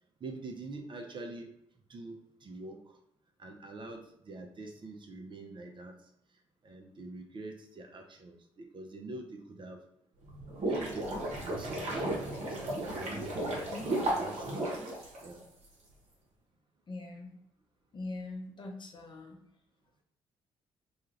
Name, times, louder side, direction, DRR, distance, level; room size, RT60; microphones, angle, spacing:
voice 1, 0.2-1.5 1.9-3.0 3.4-5.9 6.6-9.8 10.7-12.1 12.4-13.6 14.2-15.4, right 2 dB, 35° right, 3 dB, 0.5 m, -45 dB
sound 1, 10.2-15.6, right 1 dB, 55° right, 0.9 m, -34 dB
voice 2, 16.9-17.3 17.9-19.4, left 2 dB, 35° left, 1 dB, 0.7 m, -42 dB
2.3 x 2.3 x 3.1 m, 0.75 s
hypercardioid pair, 45°, 13 cm